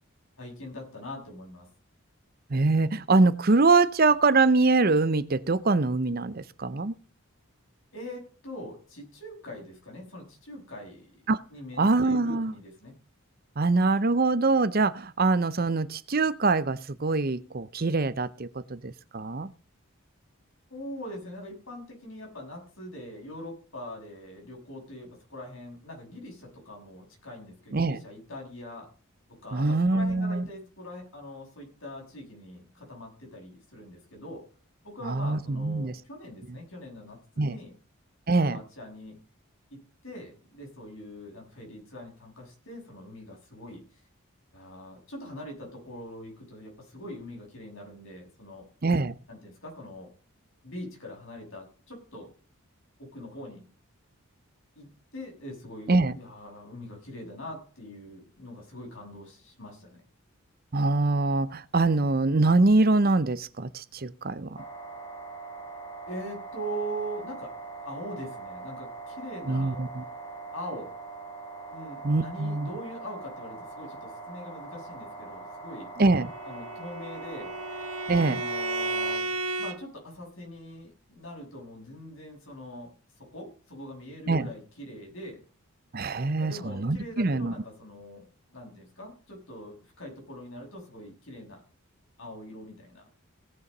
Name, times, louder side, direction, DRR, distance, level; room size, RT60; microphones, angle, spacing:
voice 1, 0.4-1.7 7.9-11.1 11.5-12.9 20.7-28.9 29.3-34.5 34.8-37.8 38.4-39.2 39.7-43.8 44.5-48.7 49.3-50.1 50.6-52.3 53.0-53.7 54.8-60.0 66.1-67.5 67.9-69.8 70.5-71.0 71.7-75.9 76.4-77.6 78.2-82.9 83.2-85.4 86.4-91.6 92.2-93.1, equal, 65° left, 0 dB, 6.9 m, -42 dB
voice 2, 2.5-6.9 11.3-11.4 11.8-12.5 13.6-19.5 27.7-28.0 29.5-30.5 35.0-36.0 37.4-37.5 38.3-38.6 48.8-49.1 55.9-56.1 60.7-64.6 69.5-70.0 72.0-72.7 76.0-76.3 78.1-78.4 84.3-84.5 85.9-87.5, right 3 dB, 40° right, 15 dB, 0.7 m, -24 dB
sound 1, 64.6-79.2, right 3 dB, 20° left, 1.7 m, -42 dB
Bowed string instrument, 76.2-79.8, right 3 dB, 75° right, 1.7 m, -33 dB
17.5 x 6.9 x 5.4 m, 0.37 s
head